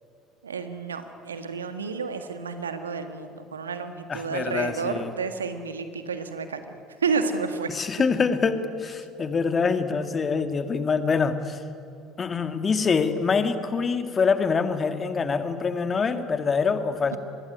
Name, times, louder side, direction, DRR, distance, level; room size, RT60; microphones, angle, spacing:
voice 1, 0.4-6.6 7.0-7.7 17.1-17.2, right 5 dB, 80° right, 9 dB, 1.6 m, -30 dB
voice 2, 4.1-5.1 7.7-11.6 12.2-17.2, left 5 dB, 30° left, 9 dB, 2.2 m, -25 dB
26.0 x 21.0 x 9.9 m, 2.6 s
figure-of-eight pair, 60°, 0 cm